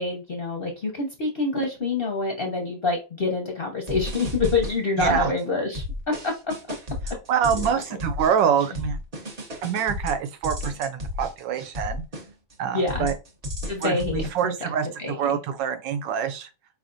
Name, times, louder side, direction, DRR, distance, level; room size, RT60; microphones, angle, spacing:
voice 1, 0.0-5.8 6.2-6.3 7.5-7.8 12.7-13.1 13.7-14.5 15.0-15.3, left 3 dB, 50° left, 0.7 m, -26 dB
sound 1, 3.9-5.4 5.7-12.5 12.9-14.4, left 2 dB, 40° right, 0.5 m, -33 dB
voice 2, 5.0-5.3 7.1-9.0 9.6-12.0 12.6-13.1 13.8-16.5, right 8 dB, 85° right, 1.3 m, -25 dB
4.9 x 3.2 x 2.6 m
omnidirectional pair, 1.9 m